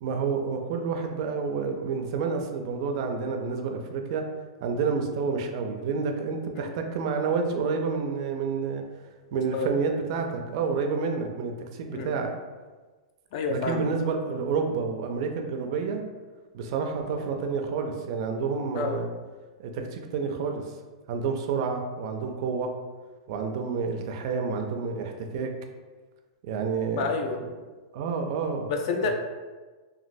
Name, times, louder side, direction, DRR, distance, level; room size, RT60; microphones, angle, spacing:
voice 1, 0.0-4.3 4.6-8.8 9.3-12.3 13.5-16.0 16.5-19.1 19.6-20.6 21.1-22.7 23.3-25.5 26.4-27.1 27.9-28.7 29.0-29.1, right 5 dB, 50° right, 4 dB, 0.4 m, -29 dB
voice 2, 9.3-9.7 11.9-12.1 13.3-13.8 18.7-19.0 26.9-27.4 28.7-29.1, left 4 dB, 50° left, 4 dB, 0.4 m, -29 dB
3.0 x 2.4 x 2.6 m, 1.3 s
supercardioid pair, 150°, 4 cm